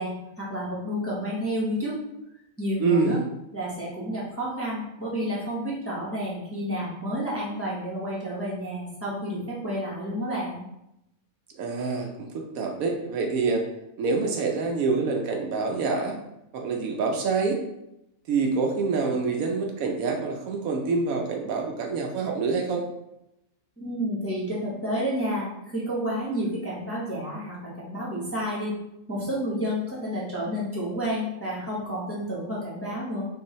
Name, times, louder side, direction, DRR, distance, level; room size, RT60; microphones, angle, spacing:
voice 1, 0.0-1.9 2.6-3.2 3.5-10.6 23.8-28.7 29.1-33.3, equal, 10° left, -7 dB, 0.8 m, -30 dB
voice 2, 2.8-3.2 11.5-12.3 12.5-13.6 14.0-16.2 16.5-17.6 18.3-22.8, right 4 dB, 75° right, 2 dB, 1.0 m, -26 dB
4.7 x 2.6 x 3.0 m, 0.85 s
omnidirectional pair, 1.6 m